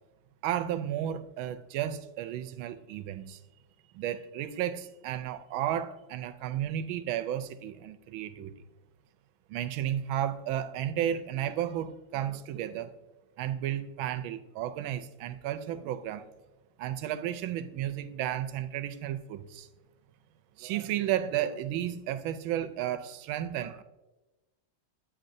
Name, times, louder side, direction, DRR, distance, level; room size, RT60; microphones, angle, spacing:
voice 1, 0.4-3.4 3.9-8.5 9.5-12.9 13.4-16.3 16.8-19.7 20.6-23.8, right 11 dB, 80° right, 11 dB, 1.3 m, -33 dB
10.0 x 8.6 x 2.6 m, 1.1 s
omnidirectional pair, 2.2 m